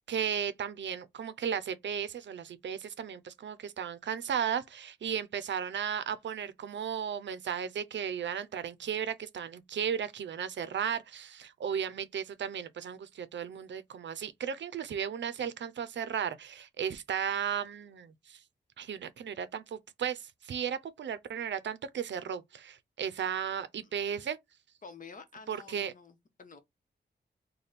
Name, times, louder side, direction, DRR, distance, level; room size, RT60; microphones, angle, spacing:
voice 1, 0.0-18.4 18.8-24.4 25.5-25.9, right 8 dB, 85° right, 0.5 m, -35 dB
voice 2, 24.8-26.6, left 5 dB, 45° left, 0.8 m, -50 dB
3.4 x 2.2 x 4.0 m
wide cardioid pair, 100°, 18 cm